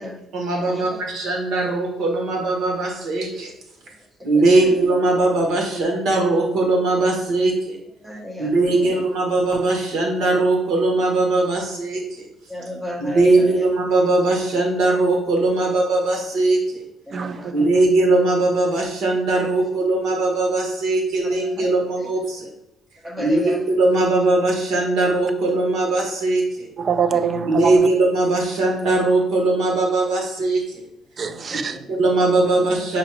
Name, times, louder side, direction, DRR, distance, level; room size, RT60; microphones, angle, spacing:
voice 1, 0.3-3.5 4.2-7.8 8.4-12.3 13.0-16.8 17.5-22.5 23.2-26.7 27.5-30.8 31.9-33.0, right 2 dB, 70° right, 1.3 m, -20 dB
voice 2, 4.3-4.8 8.0-9.0 12.5-13.7 17.1-17.8 21.2-22.1 23.0-23.6 31.5-31.9, left 1 dB, 10° right, 1.1 m, -33 dB
voice 3, 17.1-17.7 26.8-27.9 31.2-31.8, right 6 dB, 35° right, 0.3 m, -24 dB
5.1 x 2.4 x 4.4 m
cardioid pair, 145°, 0 cm